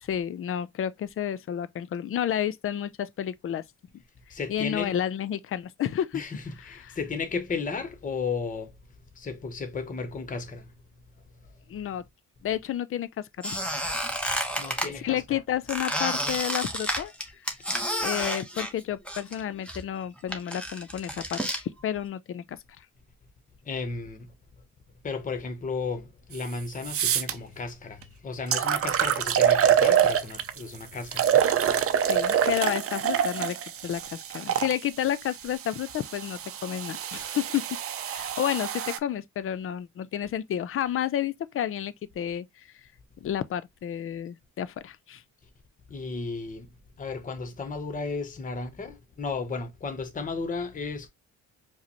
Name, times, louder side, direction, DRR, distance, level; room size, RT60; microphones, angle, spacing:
voice 1, 0.0-3.6 4.5-6.2 6.7-6.8 11.7-12.0 12.4-13.6 15.0-17.1 18.0-22.6 32.0-33.6 33.8-37.8 38.1-42.7 43.2-45.2, left 10 dB, 45° left, 0.4 m, -31 dB
voice 2, 4.3-4.9 6.1-8.7 9.1-10.7 11.4-11.5 14.6-15.4 23.6-24.3 25.0-31.5 45.9-46.7 47.0-51.1, left 4 dB, 25° left, 0.8 m, -34 dB
Squeak, 13.4-14.9 15.7-19.4 19.7-21.6, equal, 5° left, 1.1 m, -30 dB
sound 1, 26.3-26.4 26.8-27.3 28.0-28.1 28.5-30.6 31.1-34.7 35.6-39.0, right 9 dB, 50° right, 0.5 m, -25 dB
4.8 x 2.0 x 2.9 m
cardioid pair, 90°, 30 cm